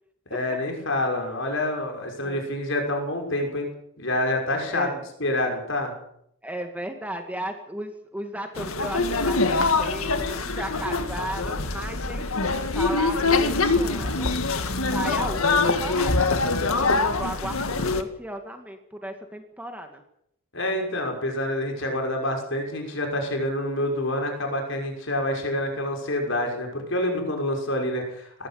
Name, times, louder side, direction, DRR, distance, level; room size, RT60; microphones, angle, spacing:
voice 1, 0.3-3.7 4.0-4.9 5.2-5.9 20.5-28.5, left 1 dB, 60° left, 2 dB, 6.2 m, -27 dB
voice 2, 4.7-5.1 6.4-14.3 14.9-20.0, right 1 dB, 5° right, 5 dB, 2.1 m, -35 dB
sound 1, 8.6-18.0, left 3 dB, 80° left, 2.0 m, -24 dB
19.5 x 15.5 x 8.9 m, 0.72 s
head